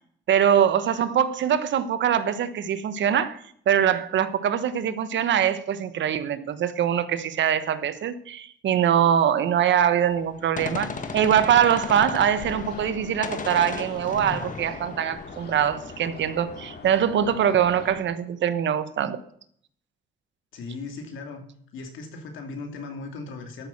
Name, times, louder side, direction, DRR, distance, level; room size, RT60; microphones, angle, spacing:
voice 1, 0.3-3.4 3.7-19.2, right 9 dB, 65° right, 1.1 m, -23 dB
Gunshot gunfire, 10.1-13.0 13.2-16.0, left 5 dB, 40° left, 1.5 m, -36 dB
sound 1, 10.6-18.0, left 4 dB, 55° left, 2.9 m, -42 dB
voice 2, 20.5-21.4 21.7-23.7, left 3 dB, 80° left, 2.8 m, -37 dB
13.0 x 6.4 x 7.2 m
cardioid pair, 90°, 20 cm